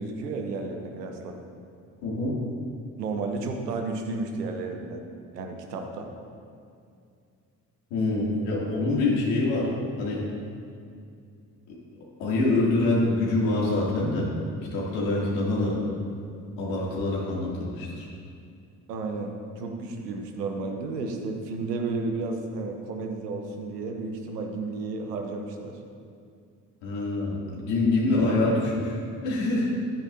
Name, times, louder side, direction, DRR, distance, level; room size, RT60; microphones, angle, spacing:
voice 1, 0.0-1.4 3.0-5.0 5.3-6.1 18.9-25.8, right 3 dB, 85° right, 4 dB, 1.0 m, -32 dB
voice 2, 2.0-2.4 7.9-9.7 10.0-10.3 11.7-11.8 12.2-14.3 14.7-15.8 16.6-18.1 26.8-29.7, left 2 dB, 70° left, -5 dB, 2.9 m, -25 dB
13.0 x 11.5 x 2.8 m, 2.4 s
hypercardioid pair, 45°, 47 cm